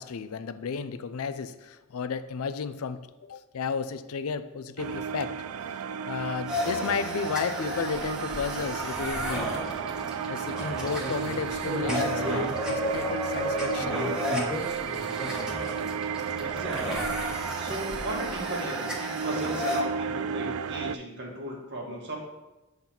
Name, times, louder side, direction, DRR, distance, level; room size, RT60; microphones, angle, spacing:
voice 1, 0.0-5.3 6.1-9.5 10.3-14.0 15.3-15.5, left 5 dB, 85° left, 12 dB, 0.5 m, -33 dB
sound 1, 4.8-21.0, right 7 dB, 75° right, 0.3 m, -33 dB
sound 2, 6.5-19.8, left 1 dB, 5° right, 1.2 m, -33 dB
voice 2, 16.4-17.1 17.5-22.2, right 1 dB, 55° right, -1 dB, 1.6 m, -36 dB
7.1 x 4.0 x 5.8 m, 1.0 s
head